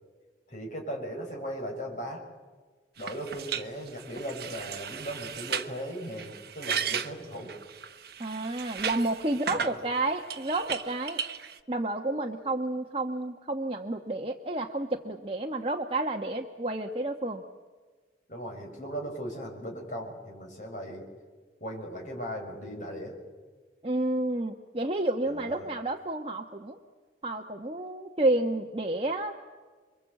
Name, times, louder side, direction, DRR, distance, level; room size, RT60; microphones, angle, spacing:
voice 1, 0.5-2.2 3.0-7.5 9.5-9.8 18.3-21.0 21.6-23.2 25.3-25.7, equal, 40° left, 1 dB, 6.5 m, -38 dB
sound 1, 3.0-9.7 10.3-11.6, right 7 dB, 55° right, 1.1 m, -36 dB
voice 2, 8.2-11.2 11.7-17.4 23.8-26.8 27.2-29.3, right 2 dB, 30° right, 2 dB, 1.2 m, -30 dB
28.0 x 23.0 x 8.3 m, 1.4 s
head